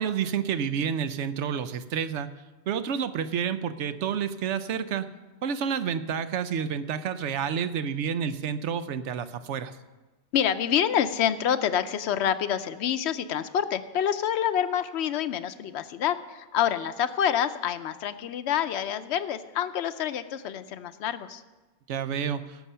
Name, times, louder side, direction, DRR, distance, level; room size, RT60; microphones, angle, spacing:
voice 1, 0.0-2.3 2.7-5.1 5.4-9.7 21.9-22.4, right 7 dB, 80° right, 12 dB, 1.0 m, -29 dB
voice 2, 10.3-21.4, left 9 dB, 70° left, 12 dB, 0.9 m, -27 dB
16.5 x 7.1 x 5.6 m, 1.2 s
omnidirectional pair, 1.2 m